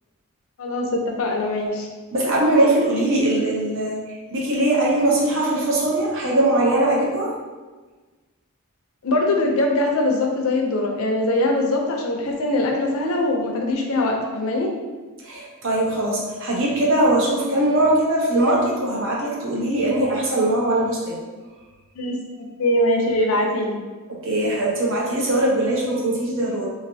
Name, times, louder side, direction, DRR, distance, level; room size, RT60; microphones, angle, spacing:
voice 1, 0.6-1.9 9.0-14.7 22.0-22.2 22.6-23.7, left 1 dB, 70° left, 1 dB, 0.5 m, -22 dB
voice 2, 2.1-7.3 15.2-21.2 24.1-26.7, right 1 dB, 60° right, -3 dB, 0.8 m, -21 dB
3.1 x 2.5 x 2.7 m, 1.3 s
head